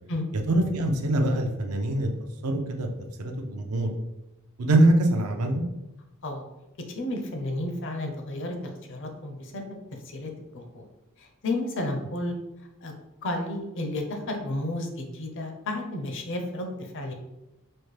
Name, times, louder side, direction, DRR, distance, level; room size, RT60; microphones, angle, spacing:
voice 1, 0.5-2.1 2.4-2.9 3.2-3.9 4.6-5.7, right 1 dB, 80° right, 4 dB, 0.5 m, -23 dB
voice 2, 6.9-8.6 8.9-9.7 10.0-10.8 11.2-12.4 12.8-12.9 13.2-17.1, left 1 dB, 60° left, 3 dB, 0.6 m, -32 dB
4.2 x 2.1 x 3.2 m, 0.99 s
head